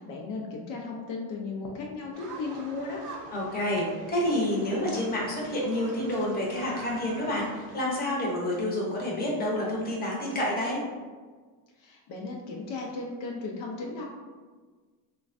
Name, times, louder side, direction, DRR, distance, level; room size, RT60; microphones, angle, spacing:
voice 1, 0.0-3.0 11.8-14.0, left 3 dB, 65° left, -1 dB, 0.6 m, -36 dB
sound 1, 2.1-7.8, right 3 dB, 45° right, 0.7 m, -45 dB
voice 2, 3.3-10.8, left 1 dB, 20° left, -4 dB, 0.8 m, -29 dB
3.1 x 2.2 x 2.5 m, 1.4 s
cardioid pair, 120°, 45 cm